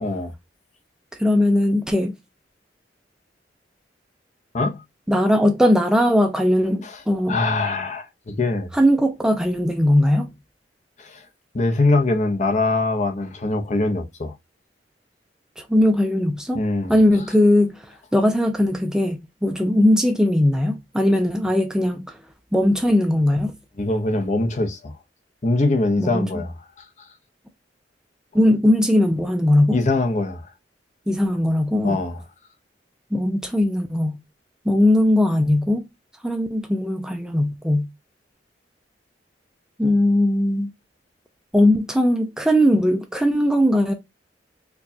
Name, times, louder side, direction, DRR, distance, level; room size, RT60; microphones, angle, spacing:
voice 1, 0.0-0.3 4.5-4.8 6.8-7.0 7.3-8.7 11.0-11.2 11.5-14.3 16.5-16.9 23.8-24.9 25.4-26.6 29.7-30.5 31.8-32.2, left 2 dB, 40° left, 0.7 m, -22 dB
voice 2, 1.2-2.1 5.1-7.4 8.7-10.3 15.6-16.6 16.9-22.2 22.5-23.5 26.0-26.3 28.3-29.8 31.1-32.0 33.1-34.2 34.7-35.8 36.2-37.9 39.8-40.7 41.5-43.9, left 1 dB, 5° right, 0.4 m, -19 dB
4.5 x 2.3 x 2.7 m
head